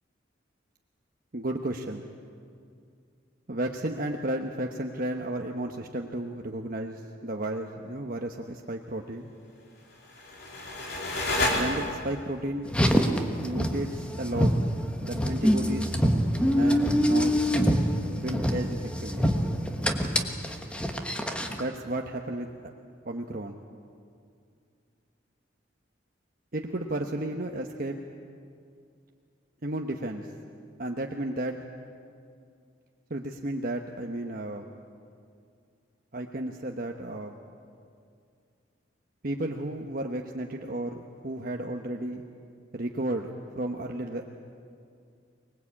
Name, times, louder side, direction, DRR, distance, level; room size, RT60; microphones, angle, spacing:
voice 1, 1.3-2.1 3.5-9.3 11.5-12.7 13.4-14.5 15.0-16.0 16.4-17.3 18.1-19.3 21.5-22.5 23.0-23.6 26.5-28.0 29.6-30.3 30.8-31.6 33.1-34.6 36.1-37.3 39.2-42.2 42.7-43.3 43.6-44.4, right 1 dB, 50° right, 3 dB, 1.1 m, -33 dB
sound 1, 9.9-12.3, left 1 dB, 60° left, 3.7 m, -30 dB
Car, 12.7-21.6, equal, 5° left, 1.3 m, -25 dB
24.5 x 20.5 x 8.6 m, 2.4 s
head